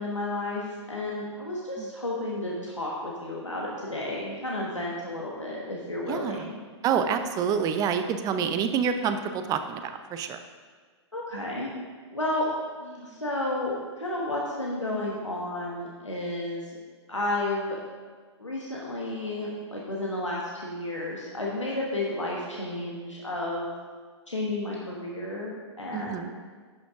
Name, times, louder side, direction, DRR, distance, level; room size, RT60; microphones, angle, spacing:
voice 1, 0.0-6.6 11.1-11.7 12.1-12.5 12.8-16.6 17.1-17.8 18.4-23.8 24.3-26.3, left 1 dB, 90° left, -3 dB, 1.3 m, -32 dB
voice 2, 6.1-6.5 6.8-10.4 25.9-26.3, right 7 dB, 25° right, 9 dB, 0.6 m, -27 dB
11.5 x 6.1 x 3.7 m, 1.5 s
figure-of-eight pair, 105°, 15 cm